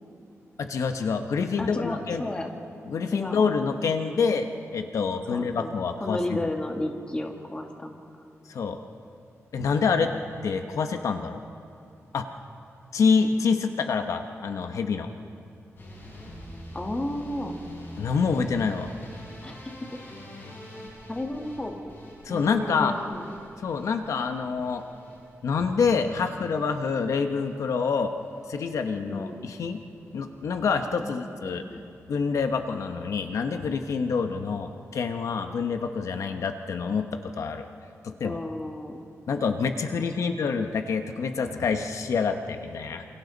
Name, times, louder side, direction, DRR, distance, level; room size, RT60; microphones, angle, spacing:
voice 1, 0.6-2.2 2.9-6.2 8.5-8.8 9.5-10.1 10.4-11.4 12.1-12.3 12.9-15.1 18.0-18.9 22.2-23.0 23.6-24.8 25.4-28.1 28.5-29.8 30.1-31.6 32.1-37.7 38.0-38.4 39.3-43.0, left 5 dB, 80° left, 6 dB, 1.0 m, -27 dB
voice 2, 1.6-2.5 3.1-3.5 5.3-8.0 16.7-17.6 19.4-19.7 21.1-21.8 22.3-23.3 29.1-29.5 31.0-31.9 38.2-39.0 40.2-40.4, left 1 dB, 20° left, 2 dB, 1.8 m, -33 dB
sound 1, 15.8-27.9 28.2-28.8 29.1-29.7 30.0-30.2 30.6-30.7 30.9-31.0, equal, 45° left, 6.9 m, -45 dB
28.0 x 27.0 x 4.0 m, 2.6 s
wide cardioid pair, 175°, 5 cm